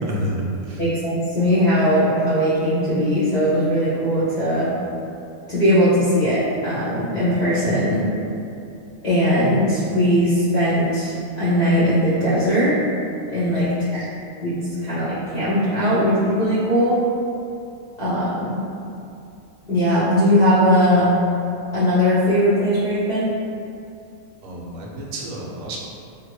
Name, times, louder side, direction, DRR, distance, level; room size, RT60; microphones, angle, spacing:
voice 1, 0.0-0.8 13.6-14.1 24.4-25.8, right 1 dB, 70° right, -3 dB, 0.9 m, -30 dB
voice 2, 0.8-4.7 5.5-8.1 9.0-12.8 13.3-14.0 14.4-17.0 18.0-18.6 19.7-21.1 21.7-23.3, equal, 40° left, -11 dB, 0.7 m, -19 dB
3.5 x 2.2 x 3.0 m, 2.7 s
omnidirectional pair, 1.5 m